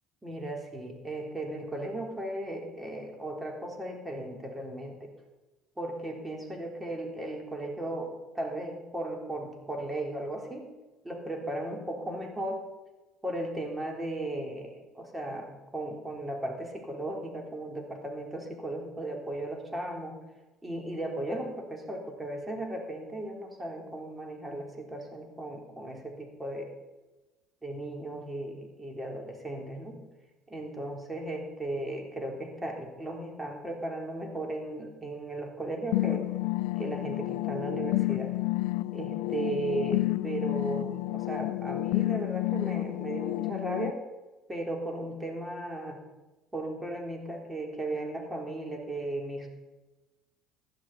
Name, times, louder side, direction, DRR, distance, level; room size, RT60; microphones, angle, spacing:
voice 1, 0.2-5.1 5.8-10.6 11.0-12.6 13.2-20.2 20.6-26.7 27.6-30.0 30.5-36.3 36.8-38.3 38.9-44.0 44.5-46.0 46.5-49.5, right 1 dB, 15° right, 1 dB, 3.7 m, -36 dB
sound 1, 35.9-43.9, left 20 dB, 80° left, 0.3 m, -30 dB
16.0 x 11.5 x 4.3 m, 1.1 s
hypercardioid pair, 70°, 0 cm